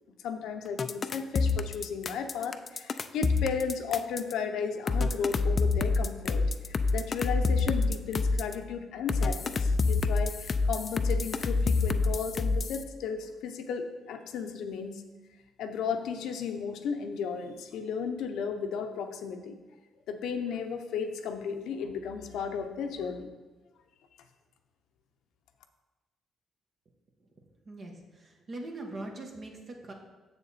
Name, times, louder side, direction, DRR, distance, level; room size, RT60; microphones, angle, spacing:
voice 1, 0.2-6.4 6.7-15.0 15.6-19.6 20.1-23.3, left 6 dB, 85° left, 6 dB, 0.8 m, -34 dB
sound 1, 0.8-4.3 4.9-8.5 9.1-12.8, left 3 dB, 40° left, 0.4 m, -27 dB
voice 2, 27.6-29.9, right 2 dB, 45° right, 1 dB, 1.3 m, -42 dB
7.1 x 6.9 x 4.1 m, 1.2 s
cardioid pair, 90°, 0 cm